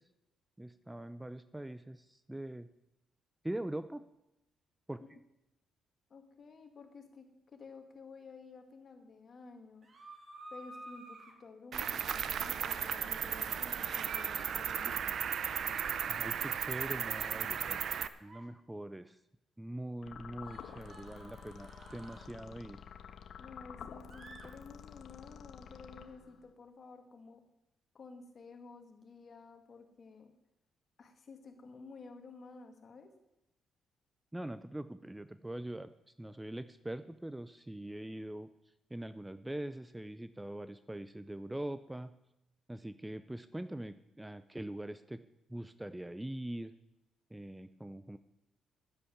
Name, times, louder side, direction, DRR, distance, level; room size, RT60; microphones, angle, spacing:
voice 1, 0.6-2.7 3.4-4.1 4.9-5.2 16.1-19.2 19.6-22.8 34.3-35.9 36.2-38.5 38.9-42.1 42.7-45.2 45.5-46.7 47.3-48.2, right 1 dB, 10° right, 12 dB, 0.5 m, -43 dB
voice 2, 6.1-7.3 7.5-9.9 10.5-15.0 23.4-27.4 27.9-30.3 31.0-33.1, left 4 dB, 45° left, 6 dB, 2.2 m, -52 dB
sound 1, 9.8-11.3 13.5-14.6 16.3-16.6 18.1-18.5 20.4-22.3 24.1-24.5, right 2 dB, 40° right, 2.5 m, -52 dB
Cricket, 11.7-18.1, right 8 dB, 60° right, 0.7 m, -35 dB
sound 2, 20.0-26.5, left 8 dB, 65° left, 0.9 m, -50 dB
10.0 x 10.0 x 7.2 m, 0.89 s
cardioid pair, 90°, 0 cm